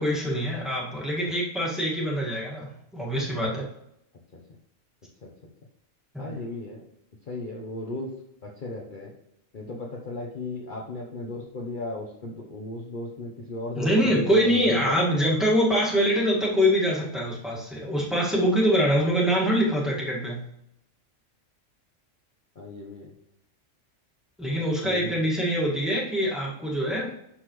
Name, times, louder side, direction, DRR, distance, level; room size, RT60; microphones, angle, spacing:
voice 1, 0.0-3.7 6.1-6.4 13.8-20.4 24.4-27.1, equal, ahead, -5 dB, 1.8 m, -24 dB
voice 2, 6.2-6.8 7.3-8.1 8.4-9.1 9.5-15.1 22.6-23.1 24.8-25.2, left 2 dB, 45° left, -2 dB, 1.0 m, -35 dB
11.5 x 4.1 x 3.1 m, 0.78 s
omnidirectional pair, 1.3 m